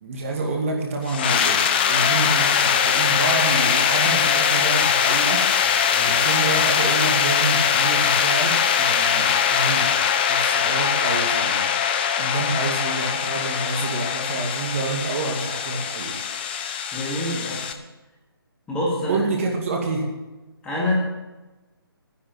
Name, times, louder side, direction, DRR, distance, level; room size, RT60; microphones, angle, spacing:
voice 1, 0.0-5.4 6.0-9.9 10.3-16.2 19.1-20.0, right 3 dB, 35° right, 0 dB, 2.2 m, -28 dB
sound 1, 1.1-17.7, left 7 dB, 25° left, 0.8 m, -21 dB
voice 2, 16.9-17.6 18.7-19.3 20.6-20.9, left 1 dB, 10° left, -5 dB, 2.5 m, -26 dB
11.5 x 10.0 x 7.8 m, 1.1 s
figure-of-eight pair, 150°, 13 cm